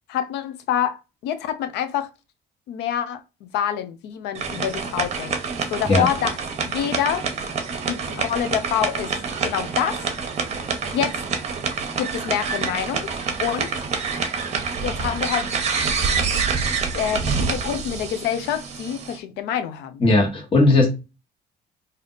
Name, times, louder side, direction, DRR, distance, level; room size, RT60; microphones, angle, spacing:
voice 1, 0.1-2.1 2.7-5.4 5.7-6.4 6.6-7.2 7.9-9.1 9.4-10.0 10.9-11.2 12.0-13.1 13.4-13.7 14.8-15.5 16.9-20.0, left 9 dB, 85° left, 0.6 m, -26 dB
sound 1, 4.3-19.2, right 5 dB, 40° right, 0.9 m, -27 dB
voice 2, 20.0-20.9, left 2 dB, 30° left, 1.4 m, -16 dB
3.4 x 2.7 x 3.9 m
cardioid pair, 110°, 17 cm